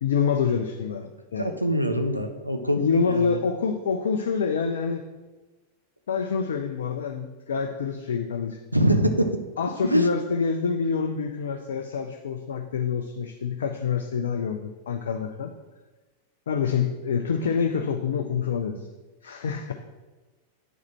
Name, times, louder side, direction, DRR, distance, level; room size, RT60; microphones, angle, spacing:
voice 1, 0.0-1.5 2.8-5.0 6.1-8.6 9.6-15.5 16.5-18.9 19.2-19.7, left 6 dB, 65° left, 6 dB, 0.5 m, -26 dB
voice 2, 1.4-3.4 8.7-9.3 9.9-10.1, right 1 dB, 90° right, 7 dB, 0.6 m, -24 dB
9.0 x 4.8 x 4.4 m, 1.2 s
figure-of-eight pair, 90°, 0 cm